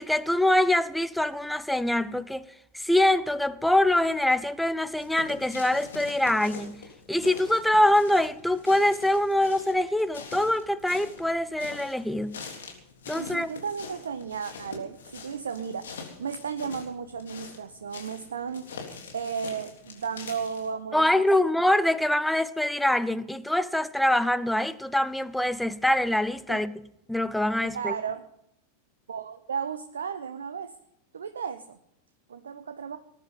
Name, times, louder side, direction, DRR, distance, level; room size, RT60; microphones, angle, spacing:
voice 1, 0.0-2.5 2.7-12.4 13.1-13.5 20.9-26.7 27.1-28.0, left 1 dB, 5° left, 0.7 m, -24 dB
sound 1, 5.0-20.7, left 5 dB, 65° left, 3.5 m, -44 dB
voice 2, 13.2-18.8 19.1-21.5 26.5-26.6 27.7-28.2 29.1-30.7 31.1-31.8 32.3-33.0, right 6 dB, 70° right, 0.8 m, -34 dB
19.5 x 10.5 x 5.5 m
figure-of-eight pair, 90°, 0 cm